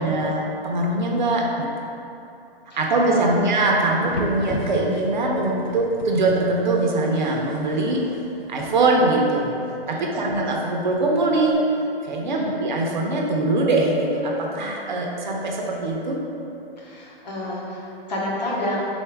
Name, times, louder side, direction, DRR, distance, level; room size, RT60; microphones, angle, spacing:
voice 1, 0.0-1.7 2.7-8.0 8.5-9.5 9.9-11.6 12.0-16.2, right 2 dB, 50° right, -1 dB, 0.5 m, -22 dB
voice 2, 3.1-3.4 9.9-10.3 12.3-12.5 16.8-18.9, left 1 dB, 45° left, -5 dB, 0.9 m, -30 dB
sound 1, 4.0-11.5, left 1 dB, 85° left, 0.6 m, -38 dB
3.8 x 2.4 x 4.4 m, 2.8 s
hypercardioid pair, 175°, 30 cm